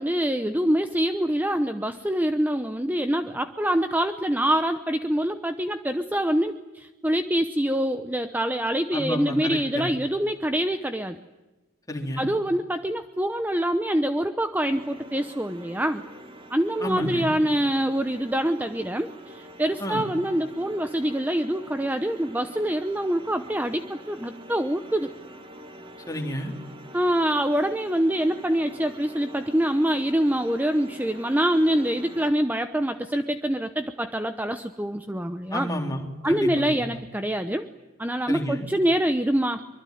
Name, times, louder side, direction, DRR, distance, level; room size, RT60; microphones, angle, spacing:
voice 1, 0.0-11.2 12.2-16.0 16.5-25.1 26.9-35.7 36.2-37.7 38.0-39.6, right 1 dB, 10° right, 8 dB, 0.9 m, -25 dB
voice 2, 8.9-9.9 11.9-12.3 16.8-17.3 19.8-20.1 26.1-26.5 35.5-37.0 38.3-38.7, left 1 dB, 15° left, 2 dB, 3.9 m, -31 dB
sound 1, 14.7-32.3, right 1 dB, 25° right, 2.3 m, -45 dB
24.5 x 24.0 x 9.5 m, 1.1 s
head